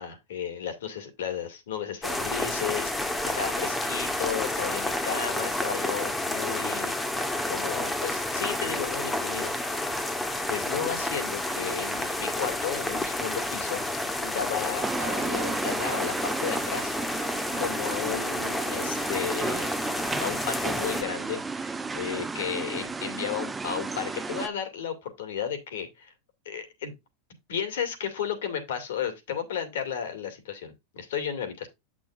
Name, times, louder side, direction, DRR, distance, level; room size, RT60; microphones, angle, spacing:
voice 1, 0.0-6.9 7.5-9.5 9.9-13.8 14.2-16.9 17.6-19.7 20.2-26.1 26.5-26.9 27.5-31.7, left 8 dB, 80° left, 2.3 m, -33 dB
sound 1, 2.0-21.0, left 1 dB, 10° left, 1.1 m, -30 dB
sound 2, 14.8-24.5, right 4 dB, 15° right, 0.6 m, -33 dB
8.8 x 6.2 x 2.6 m
hypercardioid pair, 115°, 0 cm